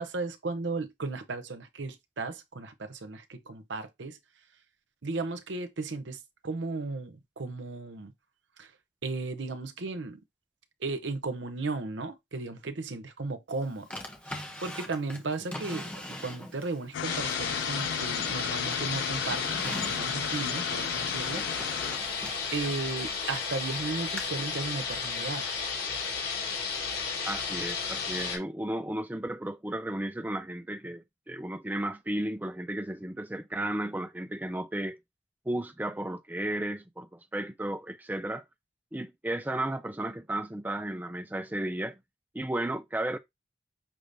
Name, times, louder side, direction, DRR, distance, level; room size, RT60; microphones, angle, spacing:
voice 1, 0.0-4.2 5.0-8.1 8.6-8.7 9.0-10.2 10.8-13.9 14.3-21.4 22.5-25.4, right 3 dB, 85° right, 0.8 m, -35 dB
Drawer open or close, 13.9-16.8 17.3-18.4 18.7-23.4 24.2-24.3, left 1 dB, 5° left, 0.9 m, -42 dB
sound 1, 16.9-22.0, left 9 dB, 90° left, 0.3 m, -35 dB
sound 2, 17.0-28.4, left 5 dB, 60° left, 2.5 m, -33 dB
voice 2, 27.3-35.0 35.5-38.4 38.9-42.0 42.3-43.2, right 1 dB, 10° right, 0.4 m, -34 dB
5.8 x 3.4 x 2.6 m
head